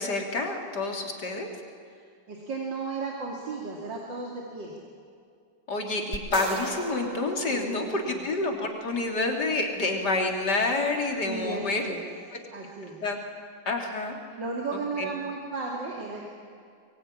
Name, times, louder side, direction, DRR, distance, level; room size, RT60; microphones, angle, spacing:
voice 1, 0.0-1.5 5.7-11.8 13.0-13.2 13.7-14.2 14.7-15.1, left 2 dB, 65° left, 2 dB, 3.7 m, -28 dB
voice 2, 1.9-4.8 7.5-8.3 11.2-12.1 12.5-13.0 14.4-16.3, right 3 dB, 80° right, -1 dB, 3.3 m, -35 dB
sound 1, 6.1-8.5, right 3 dB, 25° right, 1.3 m, -37 dB
24.0 x 22.0 x 9.9 m, 2.3 s
omnidirectional pair, 2.0 m